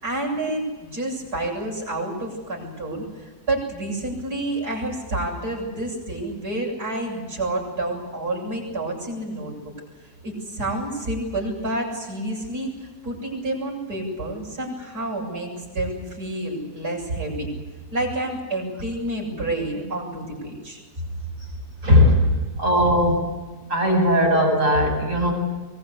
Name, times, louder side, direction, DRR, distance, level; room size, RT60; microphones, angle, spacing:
voice 1, 0.0-9.5 10.2-17.5 17.9-20.8, right 1 dB, 70° right, -2 dB, 8.1 m, -29 dB
voice 2, 21.8-22.2 22.6-23.1 23.7-25.3, left 1 dB, 50° right, 0 dB, 8.5 m, -18 dB
23.5 x 21.5 x 8.3 m, 1.3 s
omnidirectional pair, 1.7 m